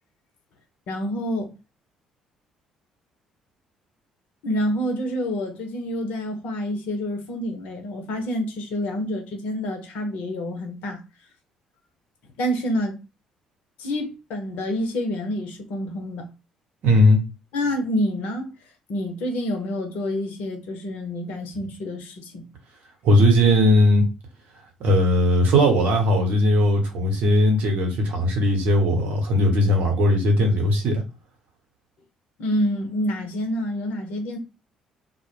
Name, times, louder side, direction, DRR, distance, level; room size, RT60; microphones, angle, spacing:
voice 1, 0.9-1.5 4.4-11.0 12.4-13.0 13.8-16.3 17.5-18.6 18.9-22.5 32.4-34.4, equal, 65° left, 0.7 m, -27 dB
voice 2, 16.8-17.2 23.0-24.1 24.8-31.0, left 1 dB, 60° right, 0.9 m, -18 dB
2.1 x 2.0 x 3.2 m
figure-of-eight pair, 50°, 3 cm